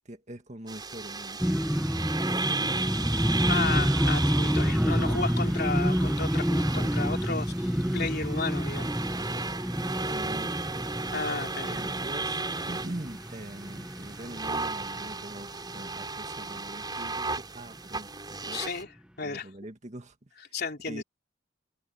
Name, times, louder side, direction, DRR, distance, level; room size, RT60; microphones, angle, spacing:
voice 1, 0.1-1.5 4.5-4.8 10.1-10.5 11.7-18.6 19.2-20.3 20.9-21.0, right 1 dB, 40° right, 2.1 m, -43 dB
sound 1, 0.7-18.8, right 3 dB, 20° right, 4.9 m, -35 dB
sound 2, 1.4-15.3 15.7-16.1 16.4-16.7, equal, 5° right, 1.0 m, -28 dB
voice 2, 3.5-8.9 11.1-11.8 18.5-18.9 19.2-19.5 20.5-21.0, left 4 dB, 55° left, 3.3 m, -33 dB
head